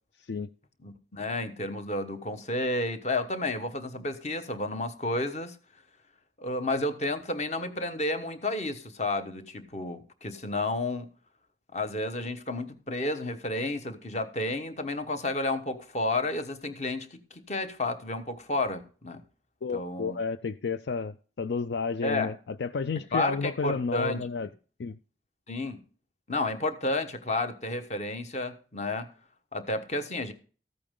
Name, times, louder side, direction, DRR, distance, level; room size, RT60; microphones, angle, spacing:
voice 1, 0.8-5.5 6.4-11.1 11.7-19.2 19.7-20.2 22.0-22.3 23.1-24.2 25.5-25.8 26.3-29.1 29.5-30.3, left 2 dB, 40° left, 1.1 m, -31 dB
voice 2, 19.6-24.5 24.8-25.0, left 5 dB, 65° left, 0.4 m, -31 dB
14.0 x 8.7 x 3.7 m
head